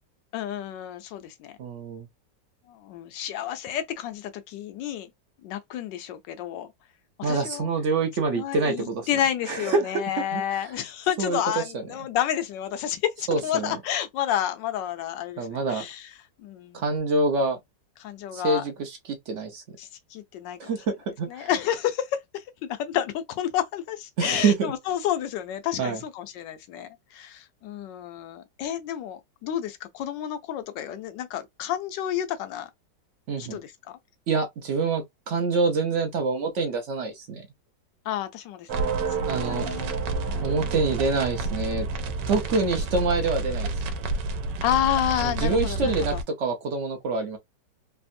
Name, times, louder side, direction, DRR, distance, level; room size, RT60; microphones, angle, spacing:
voice 1, 0.3-1.5 2.7-5.1 5.4-6.7 7.2-7.7 8.3-16.1 16.4-16.8 18.0-18.6 19.8-20.7 21.3-22.4 22.7-32.7 33.4-33.7 38.1-38.7 39.2-39.9 40.3-40.5 44.6-46.2, left 10 dB, 85° left, 1.3 m, -30 dB
voice 2, 1.6-2.1 7.2-9.1 9.5-10.0 10.3-10.4 11.2-11.8 13.3-13.8 15.4-15.8 16.7-17.6 18.3-19.8 20.6-21.5 24.2-24.7 25.8-26.0 33.3-33.6 34.3-37.5 39.3-39.7 40.4-41.9 42.3-43.7 45.2-47.4, right 3 dB, 65° right, 0.7 m, -26 dB
sound 1, 38.7-46.2, right 3 dB, 80° right, 1.2 m, -29 dB
3.4 x 2.0 x 2.6 m
omnidirectional pair, 1.9 m